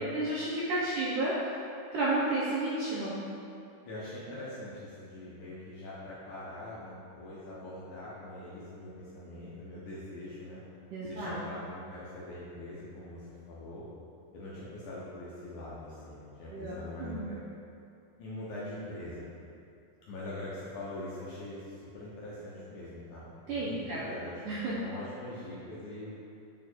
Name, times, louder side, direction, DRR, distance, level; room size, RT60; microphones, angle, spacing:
voice 1, 0.0-1.4 1.9-3.1 10.9-11.4 16.5-17.3 23.5-24.0 24.5-24.7, right 2 dB, 75° right, -7 dB, 1.9 m, -32 dB
voice 2, 3.9-10.6 11.0-13.8 14.3-17.4 18.2-19.3 20.1-26.2, left 1 dB, 70° left, -8 dB, 2.0 m, -43 dB
8.8 x 3.8 x 4.5 m, 2.6 s
omnidirectional pair, 4.6 m